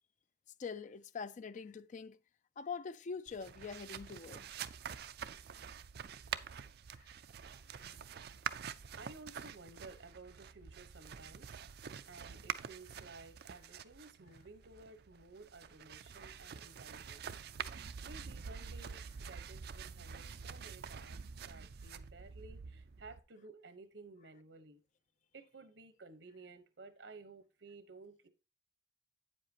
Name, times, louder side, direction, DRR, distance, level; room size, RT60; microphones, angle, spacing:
voice 1, 0.6-2.2 2.6-4.5 7.0-7.1, left 5 dB, 40° left, 0.4 m, -44 dB
sound 1, 3.3-23.2, right 7 dB, 60° right, 0.4 m, -47 dB
voice 2, 7.9-24.8 25.3-28.3, right 3 dB, 75° right, 1.1 m, -55 dB
8.7 x 7.6 x 2.9 m
head